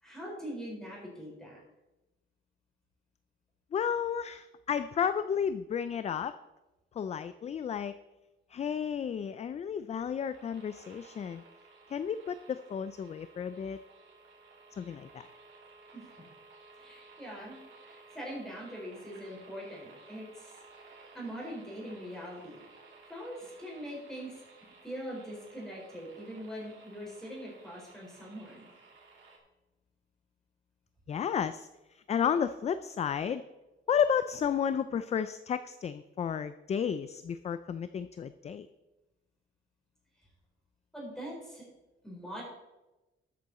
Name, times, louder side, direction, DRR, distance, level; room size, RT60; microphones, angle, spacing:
voice 1, 0.0-1.6 15.9-16.0 16.8-20.5 21.1-22.6 23.1-24.4 24.8-28.7 40.9-41.6 42.0-42.4, equal, ahead, -4 dB, 4.7 m, -42 dB
voice 2, 3.7-6.3 7.0-7.9 8.5-11.4 11.9-13.8 14.8-15.3 31.1-33.4 33.9-38.7, left 7 dB, 30° left, 12 dB, 0.4 m, -32 dB
sound 1, 10.2-29.4, right 3 dB, 65° right, 3.1 m, -56 dB
13.0 x 8.5 x 4.2 m, 1.0 s
cardioid pair, 155°, 21 cm